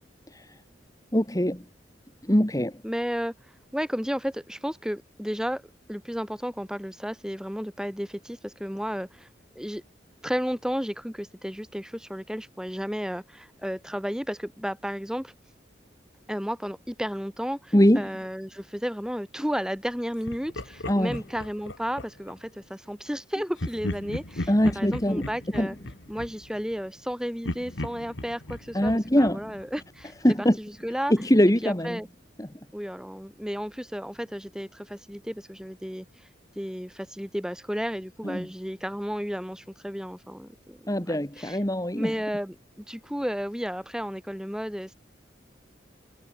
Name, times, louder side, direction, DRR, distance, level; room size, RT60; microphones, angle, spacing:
voice 1, 1.1-1.6 2.2-2.8 17.7-18.1 20.9-21.2 24.5-25.3 25.6-25.7 28.7-29.5 30.2-30.6 31.1-32.0 32.4-32.5 38.2-38.5 40.9-42.1, equal, 20° left, 2.1 m, -22 dB
voice 2, 2.8-3.3 3.7-5.6 5.9-9.3 9.5-9.8 10.2-15.3 16.3-25.8 26.1-31.1 31.6-32.1 32.7-36.1 36.6-41.6 42.0-44.9, equal, 5° right, 4.2 m, -33 dB
Laughter, 20.3-22.4 23.6-27.1 27.4-30.2, left 1 dB, 80° left, 2.7 m, -37 dB
head